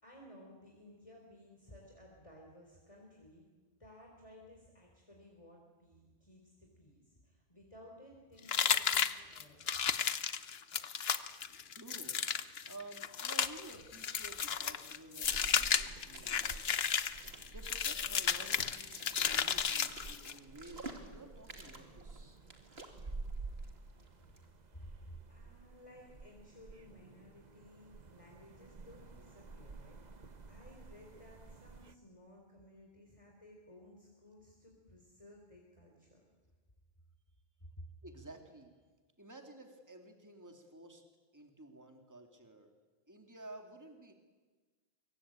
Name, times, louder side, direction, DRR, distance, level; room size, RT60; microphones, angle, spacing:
voice 1, 0.0-3.5 3.8-9.8 24.1-24.5 24.7-36.2 37.6-37.9, equal, 30° left, 0 dB, 4.1 m, -57 dB
sound 1, 8.5-20.4, left 7 dB, 75° left, 1.2 m, -33 dB
voice 2, 11.4-12.2 12.6-17.0 17.5-22.4 38.0-38.7 39.2-41.0 41.3-42.7 43.1-44.1, right 2 dB, 15° right, 4 dB, 2.6 m, -53 dB
sound 2, 13.5-24.5, right 2 dB, 70° right, 2.8 m, -54 dB
sound 3, 15.2-31.9, right 3 dB, 45° right, 1.1 m, -51 dB
25.0 x 23.0 x 8.9 m, 1.3 s
omnidirectional pair, 1.1 m